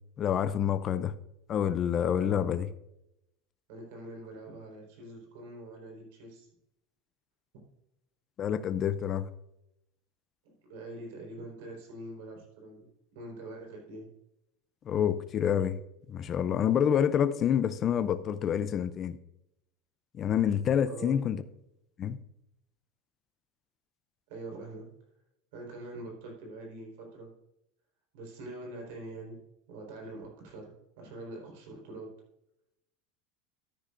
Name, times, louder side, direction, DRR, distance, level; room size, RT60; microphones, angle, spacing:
voice 1, 0.2-1.1 1.5-2.7 8.4-9.3 14.9-15.8 16.1-19.2 20.1-21.4 22.0-22.2, left 9 dB, 25° left, 12 dB, 0.4 m, -27 dB
voice 2, 2.1-2.5 3.7-6.5 10.4-12.9 13.1-14.1 20.8-21.2 24.3-24.9 25.5-27.3 28.1-29.4 29.7-32.1, right 2 dB, 70° right, 0 dB, 4.2 m, -44 dB
13.5 x 9.7 x 2.5 m, 0.85 s
supercardioid pair, 170°, 0 cm